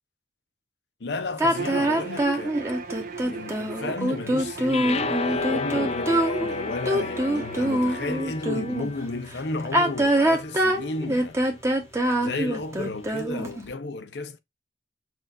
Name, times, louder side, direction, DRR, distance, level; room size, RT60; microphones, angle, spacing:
voice 1, 1.0-2.6 3.2-11.4 12.2-14.4, left 3 dB, 75° left, 0.7 m, -33 dB
sound 1, 1.4-8.9 9.6-13.6, right 1 dB, 15° right, 0.9 m, -24 dB
Bowed string instrument, 1.5-8.2, right 4 dB, 50° right, 0.6 m, -37 dB
sound 2, 4.7-11.0, left 4 dB, 35° left, 0.4 m, -33 dB
6.1 x 2.5 x 2.4 m
head